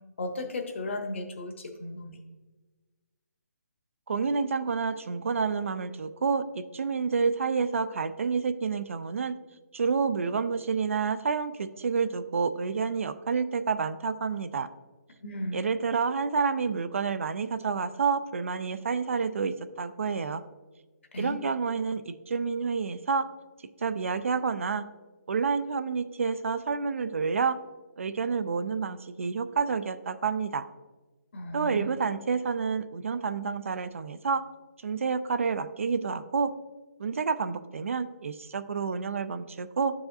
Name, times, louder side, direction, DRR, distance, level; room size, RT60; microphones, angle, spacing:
voice 1, 0.2-2.2 15.2-15.6 21.1-21.4 31.3-31.9, left 1 dB, 45° left, 5 dB, 0.9 m, -35 dB
voice 2, 4.1-9.3 9.7-14.7 15.5-20.4 21.2-23.3 23.8-24.9 25.3-27.6 28.0-30.6 31.5-34.4 34.8-36.5 37.0-39.9, right 5 dB, 50° right, 11 dB, 0.4 m, -29 dB
11.0 x 4.8 x 2.6 m, 1.3 s
hypercardioid pair, 175°, 9 cm